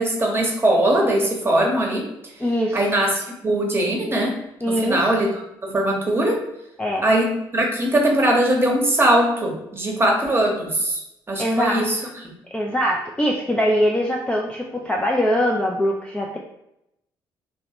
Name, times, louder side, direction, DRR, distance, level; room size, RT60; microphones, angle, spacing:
voice 1, 0.0-2.1 2.7-4.4 4.8-5.3 5.6-6.4 7.0-11.0 11.3-12.0, right 1 dB, 20° right, -1 dB, 0.9 m, -20 dB
voice 2, 2.4-2.9 4.6-5.1 6.8-7.0 11.4-12.1 12.5-16.4, equal, 10° left, -1 dB, 0.4 m, -22 dB
2.9 x 2.1 x 2.8 m, 0.84 s
figure-of-eight pair, 45°, 11 cm